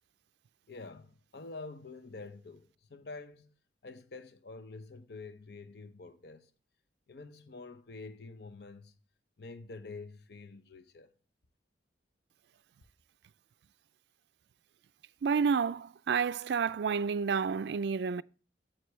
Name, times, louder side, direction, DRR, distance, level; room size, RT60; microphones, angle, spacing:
voice 1, 0.7-3.5 3.8-6.5 7.1-8.9 9.4-11.1, left 3 dB, 60° left, 0.7 m, -47 dB
voice 2, 15.2-18.2, right 6 dB, 65° right, 0.4 m, -30 dB
9.4 x 7.6 x 3.1 m
head